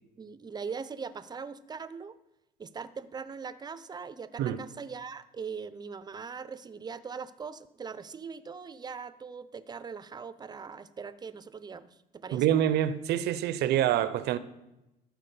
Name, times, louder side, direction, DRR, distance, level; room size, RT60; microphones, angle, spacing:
voice 1, 0.2-2.2 2.6-12.4, right 5 dB, 25° right, 0.6 m, -41 dB
voice 2, 12.3-14.4, right 11 dB, 75° right, 0.7 m, -26 dB
12.5 x 4.8 x 6.9 m
cardioid pair, 110°, 17 cm